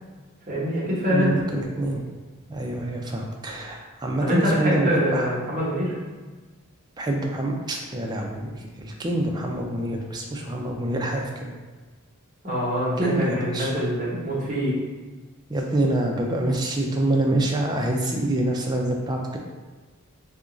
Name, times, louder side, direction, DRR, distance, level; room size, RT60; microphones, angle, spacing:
voice 1, 0.5-1.3 4.2-6.0 12.4-14.8, equal, 35° right, -7 dB, 0.9 m, -25 dB
voice 2, 1.1-2.0 2.5-5.3 7.0-11.5 13.0-13.7 15.5-19.4, right 1 dB, 20° right, 0 dB, 0.4 m, -26 dB
2.9 x 2.5 x 3.7 m, 1.4 s
head